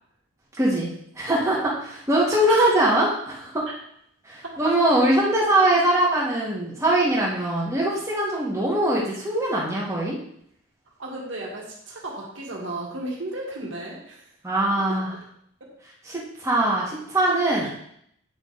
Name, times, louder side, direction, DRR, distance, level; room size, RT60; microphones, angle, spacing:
voice 1, 0.6-0.9 1.2-3.6 4.3-10.2 14.4-15.1 16.1-17.7, right 1 dB, 15° right, -5 dB, 1.7 m, -22 dB
voice 2, 11.0-14.2 14.9-15.0 17.6-17.7, right 2 dB, 60° right, -2 dB, 1.7 m, -34 dB
9.1 x 3.7 x 4.0 m, 0.70 s
head